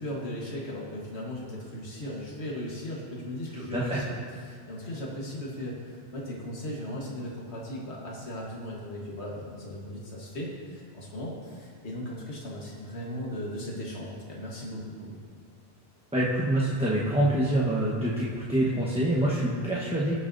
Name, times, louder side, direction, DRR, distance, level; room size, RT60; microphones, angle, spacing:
voice 1, 0.0-15.1, equal, 90° left, -3 dB, 1.7 m, -37 dB
voice 2, 16.1-20.2, right 1 dB, 5° right, -6 dB, 1.1 m, -26 dB
19.0 x 7.0 x 2.7 m, 2.1 s
omnidirectional pair, 1.1 m